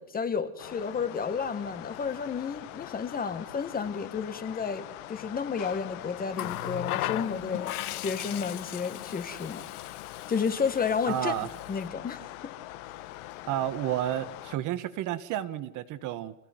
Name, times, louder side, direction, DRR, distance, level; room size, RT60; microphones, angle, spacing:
voice 1, 0.0-9.6 10.3-11.3 11.7-12.5, left 6 dB, 20° left, 10 dB, 1.7 m, -31 dB
sound 1, 0.6-14.6, left 15 dB, 55° left, 1.7 m, -43 dB
Water tap faucet, 6.3-11.9 13.1-13.3, left 16 dB, 75° left, 1.5 m, -37 dB
voice 2, 11.1-11.5 13.5-16.3, right 12 dB, 40° right, 12 dB, 1.5 m, -31 dB
28.5 x 16.5 x 9.5 m, 0.90 s
supercardioid pair, 125°, 45 cm